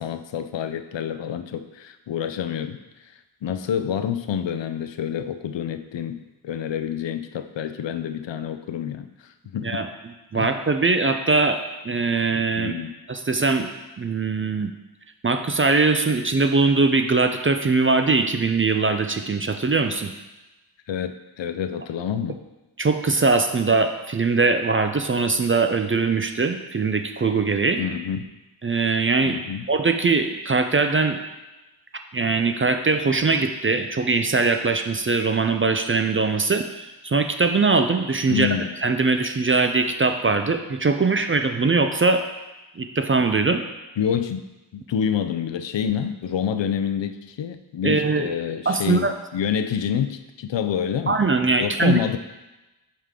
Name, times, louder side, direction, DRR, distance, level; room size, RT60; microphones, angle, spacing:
voice 1, 0.0-2.8 3.4-6.2 6.4-9.1 9.5-9.8 10.3-10.5 12.6-12.9 20.9-21.1 21.4-22.4 27.8-28.3 29.2-29.6 38.3-38.7 44.0-44.4 44.7-51.2 51.6-52.2, left 8 dB, 65° left, 9 dB, 0.5 m, -27 dB
voice 2, 10.3-12.7 13.1-13.7 14.0-14.7 15.2-20.1 22.8-27.8 28.6-29.4 29.7-31.2 32.1-38.5 38.8-42.2 42.8-43.6 47.8-48.3 48.7-49.1 51.1-52.0, right 3 dB, 30° right, 7 dB, 0.4 m, -21 dB
5.5 x 4.9 x 3.7 m, 1.1 s
wide cardioid pair, 65°, 47 cm